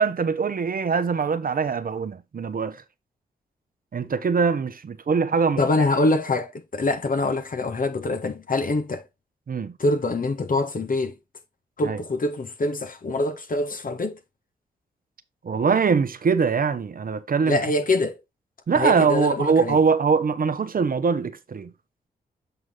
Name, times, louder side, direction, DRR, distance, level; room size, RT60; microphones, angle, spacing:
voice 1, 0.0-2.8 3.9-5.6 9.5-9.7 11.8-12.0 15.4-17.6 18.7-21.7, right 5 dB, 50° right, 1.0 m, -22 dB
voice 2, 5.6-9.0 9.8-11.2 11.8-14.2 17.5-18.2 18.7-19.8, left 2 dB, 50° left, 1.5 m, -24 dB
7.9 x 4.6 x 3.8 m
supercardioid pair, 40°, 18 cm